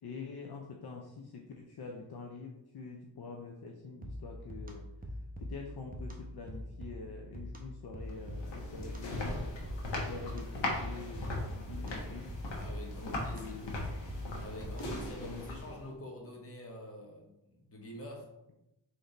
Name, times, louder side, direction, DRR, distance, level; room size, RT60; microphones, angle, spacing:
voice 1, 0.0-4.9 5.4-9.4 9.9-12.3 13.0-13.8 15.2-15.6, left 4 dB, 60° left, 1 dB, 0.6 m, -45 dB
sound 1, 4.0-15.2, left 1 dB, 20° right, 0.7 m, -44 dB
sound 2, 8.1-15.9, left 2 dB, 85° left, 1.2 m, -39 dB
voice 2, 12.5-13.6 14.4-18.3, left 1 dB, 30° left, -1 dB, 1.1 m, -46 dB
4.0 x 3.2 x 3.9 m, 0.89 s
wide cardioid pair, 115°, 44 cm